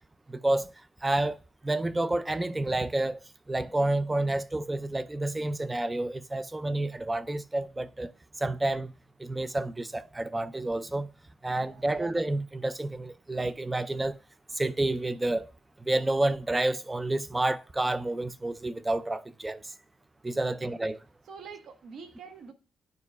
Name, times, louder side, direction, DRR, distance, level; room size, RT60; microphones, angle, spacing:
voice 1, 0.3-0.7 1.0-1.4 1.6-8.1 8.4-8.9 9.2-11.1 11.4-14.2 14.5-15.5 15.8-19.7 20.2-21.0, right 2 dB, 15° right, 0.4 m, -29 dB
voice 2, 11.5-11.9 20.3-20.5 21.3-22.5, right 5 dB, 65° right, 1.0 m, -46 dB
10.5 x 4.6 x 2.2 m
cardioid pair, 90°, 0 cm